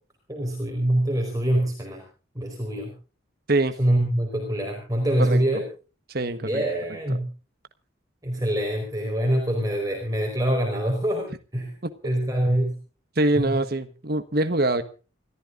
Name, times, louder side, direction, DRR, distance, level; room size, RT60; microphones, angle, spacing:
voice 1, 0.3-2.0 2.3-2.9 3.8-5.6 6.4-7.3 8.2-11.8 12.0-12.8 13.3-13.6, right 1 dB, 15° right, 1 dB, 4.5 m, -25 dB
voice 2, 6.1-6.6 11.8-11.9 13.2-14.8, right 2 dB, 50° right, 10 dB, 1.3 m, -24 dB
29.0 x 14.5 x 2.5 m, 0.36 s
head